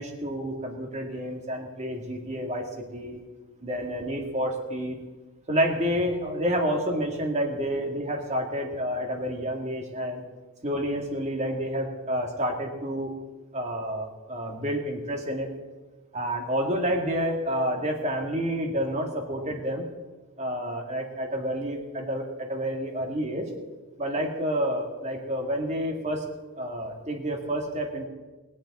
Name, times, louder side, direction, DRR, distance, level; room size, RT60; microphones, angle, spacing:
voice 1, 0.0-3.2 3.6-5.0 5.5-10.2 10.6-13.1 13.5-15.5 16.1-19.9 20.4-23.5 24.0-26.2 26.6-28.1, equal, 30° right, 2 dB, 2.1 m, -29 dB
21.0 x 8.9 x 4.2 m, 1.2 s
head